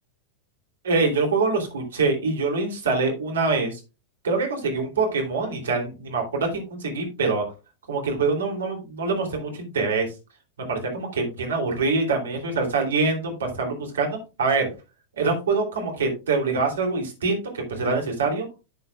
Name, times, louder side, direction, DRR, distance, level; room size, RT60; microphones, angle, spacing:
voice 1, 0.8-3.8 4.2-7.4 7.9-10.1 10.6-14.7 15.2-18.5, right 4 dB, 65° right, 2 dB, 2.9 m, -25 dB
11.0 x 7.7 x 2.3 m, 0.29 s
figure-of-eight pair, 90°, 0 cm